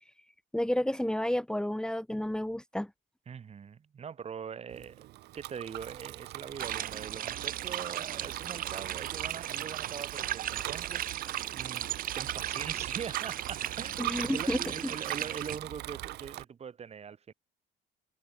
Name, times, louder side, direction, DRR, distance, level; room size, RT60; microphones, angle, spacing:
voice 1, 0.5-2.9 14.0-14.6, left 1 dB, 5° left, 2.0 m, -30 dB
voice 2, 3.3-5.1 5.3-11.9 12.1-17.3, right 7 dB, 40° right, 2.7 m, -42 dB
Bicycle, 4.7-16.4, right 17 dB, 75° right, 1.0 m, -41 dB
sound 1, 6.6-15.6, right 11 dB, 55° right, 1.7 m, -37 dB
cardioid pair, 110°, 17 cm